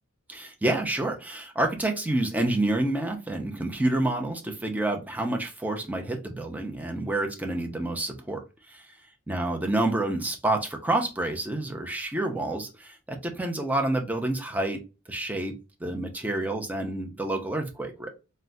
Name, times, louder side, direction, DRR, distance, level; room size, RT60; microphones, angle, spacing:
voice 1, 0.3-8.4 8.7-8.8 9.3-14.8 15.1-15.5 15.8-18.1, right 2 dB, 10° right, 2 dB, 0.5 m, -28 dB
3.5 x 2.2 x 2.6 m, 0.29 s
head